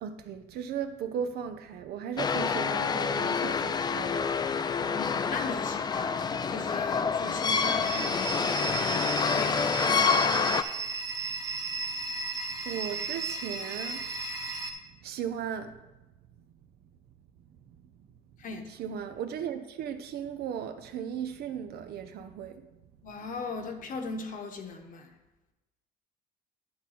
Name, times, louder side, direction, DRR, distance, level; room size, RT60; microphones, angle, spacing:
voice 1, 0.0-4.2 12.6-14.0 15.0-15.7 18.8-22.6, right 8 dB, 70° right, 8 dB, 0.8 m, -36 dB
sound 1, 2.2-10.6, left 5 dB, 25° left, 0.4 m, -27 dB
voice 2, 4.7-9.8 18.4-18.6 23.0-25.1, left 4 dB, 50° left, 4 dB, 1.2 m, -39 dB
sound 2, 7.8-14.7, right 4 dB, 20° right, 1.1 m, -35 dB
10.5 x 3.8 x 5.8 m, 1.0 s
cardioid pair, 110°, 17 cm